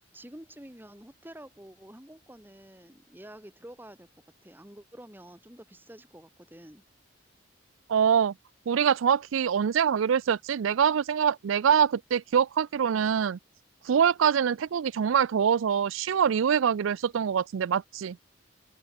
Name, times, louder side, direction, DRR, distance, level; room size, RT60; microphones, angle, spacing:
voice 1, 0.1-4.1 4.4-6.8, right 1 dB, 10° right, 1.7 m, -48 dB
voice 2, 7.9-8.3 8.7-13.4 13.8-18.2, right 7 dB, 75° right, 0.4 m, -24 dB
open air
head